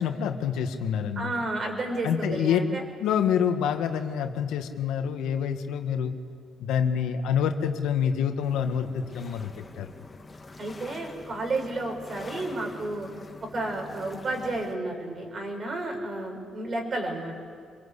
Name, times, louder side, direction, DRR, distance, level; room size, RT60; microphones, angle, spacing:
voice 1, 0.0-1.3 2.0-2.6 3.0-6.2 6.6-9.5 9.8-9.9, left 8 dB, 90° left, 6 dB, 1.7 m, -27 dB
voice 2, 1.2-2.8 10.6-13.1 13.5-17.4, right 2 dB, 45° right, 3 dB, 5.8 m, -31 dB
sound 1, 8.4-14.7, left 3 dB, 25° left, 2.4 m, -45 dB
26.0 x 22.5 x 8.4 m, 2.1 s
cardioid pair, 90°, 0 cm